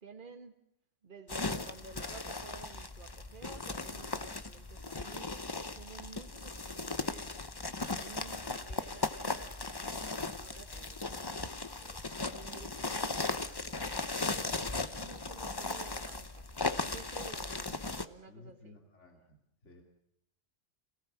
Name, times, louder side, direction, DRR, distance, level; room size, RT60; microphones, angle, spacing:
voice 1, 0.0-0.5 1.0-5.3 5.8-7.3 7.8-9.5 10.1-11.5 11.8-13.9 14.9-16.5 16.8-18.8, right 4 dB, 40° right, 6 dB, 1.9 m, -53 dB
sound 1, 1.3-18.1, left 3 dB, 20° left, 0.9 m, -37 dB
voice 2, 18.3-19.8, left 3 dB, 65° left, 1 dB, 3.1 m, -56 dB
28.0 x 18.0 x 7.4 m, 0.80 s
omnidirectional pair, 1.3 m